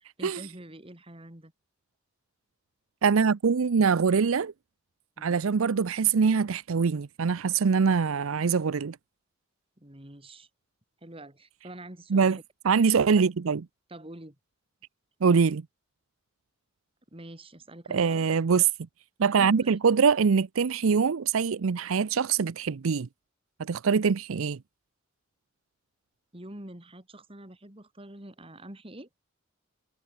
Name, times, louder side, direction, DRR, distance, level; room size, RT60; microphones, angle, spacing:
voice 1, 0.0-1.5 5.2-5.4 9.8-10.5 11.0-12.4 13.9-14.4 17.1-18.3 19.4-19.8 26.3-29.1, right 1 dB, 25° right, 2.9 m, -46 dB
voice 2, 3.0-4.5 5.2-9.0 12.1-12.4 12.6-13.7 15.2-15.6 17.9-18.7 19.2-23.1 23.6-24.6, right 5 dB, 85° right, 0.5 m, -23 dB
head